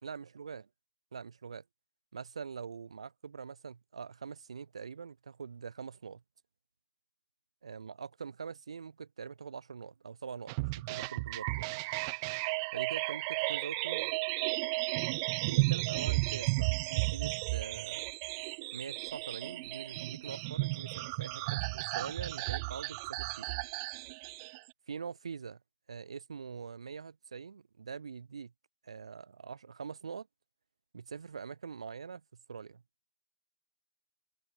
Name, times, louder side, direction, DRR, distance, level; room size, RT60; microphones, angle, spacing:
voice 1, 0.0-0.6 1.1-1.6 2.1-6.2 7.6-11.8 12.7-14.1 15.5-18.1 18.7-23.6 24.9-25.6 25.9-28.5 28.8-30.3 30.9-32.8, right 6 dB, 65° right, 4.0 m, -44 dB
sound 1, 10.5-24.6, right 28 dB, 40° right, 1.2 m, -34 dB
open air
figure-of-eight pair, 110°, 3 cm